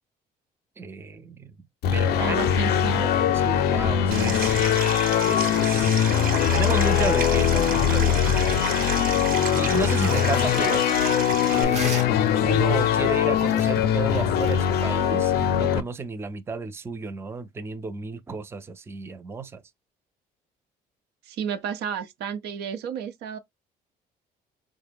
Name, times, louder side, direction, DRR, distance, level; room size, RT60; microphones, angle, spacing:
voice 1, 0.8-1.5 1.9-2.4 2.9-4.5 5.2-6.1 6.5-10.8 11.5-19.6, right 4 dB, 15° right, 0.4 m, -33 dB
sound 1, 1.8-15.8, left 9 dB, 70° left, 0.5 m, -22 dB
voice 2, 2.2-3.0 21.2-23.4, right 7 dB, 75° right, 0.6 m, -31 dB
Stream, 4.1-11.6, right 6 dB, 60° right, 1.0 m, -32 dB
sound 2, 9.5-14.6, right 5 dB, 40° right, 0.8 m, -40 dB
3.9 x 2.1 x 3.4 m
cardioid pair, 110°, 17 cm